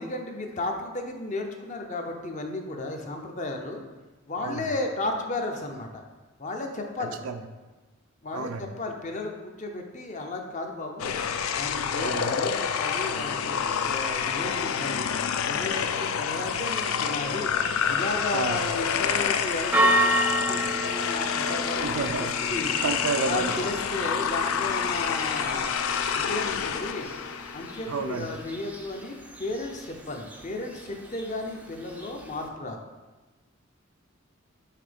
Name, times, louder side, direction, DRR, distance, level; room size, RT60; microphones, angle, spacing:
voice 1, 0.0-3.8 4.3-6.0 6.4-7.2 8.2-11.2 11.6-13.6 13.8-15.1 15.5-17.5 17.9-20.1 20.5-22.7 23.3-25.7 26.2-27.1 27.5-32.8, left 2 dB, 35° left, 3 dB, 0.6 m, -34 dB
sound 1, 11.0-28.3, left 7 dB, 75° left, 0.4 m, -28 dB
voice 2, 11.9-12.3 18.3-18.6 21.8-22.3 22.8-23.6 24.5-24.6 27.9-28.3, right 4 dB, 85° right, 8 dB, 0.5 m, -30 dB
Church bell, 18.7-32.5, right 1 dB, 5° right, 0.4 m, -32 dB
5.8 x 3.6 x 5.1 m, 1.2 s
head